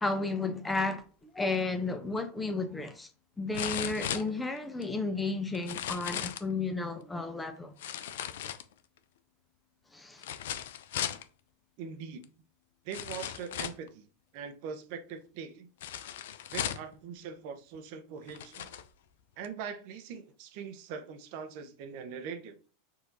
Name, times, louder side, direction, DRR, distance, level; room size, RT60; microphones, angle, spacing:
voice 1, 0.0-3.1 3.4-7.7 9.9-10.2, left 3 dB, 10° left, 0.7 m, -33 dB
sound 1, 2.2-2.3 3.5-4.8 5.5-6.5 7.8-9.0 10.2-11.2 12.2-12.3 12.9-13.9 15.8-16.9 17.7-17.8 18.3-18.9 19.4-19.5, left 10 dB, 70° left, 0.4 m, -37 dB
voice 2, 11.8-12.2 12.8-14.0 14.3-15.7 16.5-18.7 19.4-22.6, right 6 dB, 55° right, 0.7 m, -42 dB
6.2 x 2.7 x 2.6 m
hypercardioid pair, 95°, 0 cm